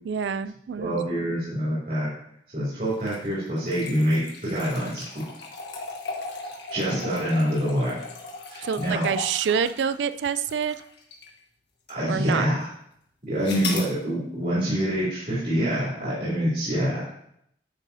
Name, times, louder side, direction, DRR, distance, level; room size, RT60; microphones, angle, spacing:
voice 1, 0.0-1.0 1.2-1.3 8.6-10.8 12.1-12.5, right 7 dB, 90° right, 13 dB, 0.4 m, -27 dB
voice 2, 0.8-2.1 2.5-5.3 6.7-8.0 8.5-9.1 11.9-12.7 13.3-17.2, equal, 50° right, -8 dB, 2.9 m, -26 dB
sound 1, 2.9-11.4 11.9-12.0 13.4-13.9, left 3 dB, 75° left, 1.5 m, -37 dB
9.7 x 6.1 x 2.8 m, 0.72 s
head